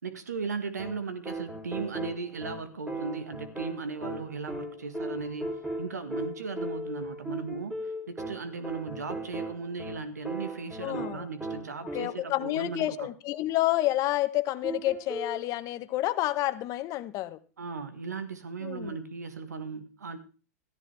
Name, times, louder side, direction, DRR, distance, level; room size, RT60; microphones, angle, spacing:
voice 1, 0.0-5.5 5.8-13.1 17.6-20.2, right 4 dB, 90° right, 11 dB, 1.6 m, -37 dB
sound 1, 0.8-12.4 14.6-15.5, right 1 dB, 10° right, 3.2 m, -37 dB
voice 2, 10.8-11.3 11.9-17.4 18.6-19.0, left 15 dB, 40° left, 13 dB, 1.1 m, -29 dB
14.0 x 13.0 x 3.4 m, 0.34 s
hypercardioid pair, 105°, 9 cm